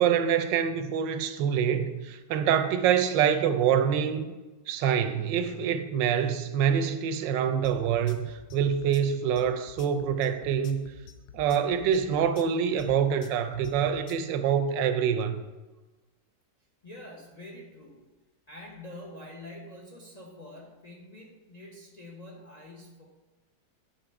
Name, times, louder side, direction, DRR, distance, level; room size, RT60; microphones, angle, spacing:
voice 1, 0.0-4.3 4.7-10.9 11.3-15.4, right 8 dB, 90° right, 10 dB, 1.3 m, -26 dB
sound 1, 7.6-14.3, left 9 dB, 90° left, 1.3 m, -49 dB
voice 2, 16.8-18.0 18.5-23.0, left 1 dB, 35° left, -1 dB, 0.7 m, -46 dB
9.2 x 4.1 x 4.6 m, 1.2 s
omnidirectional pair, 1.9 m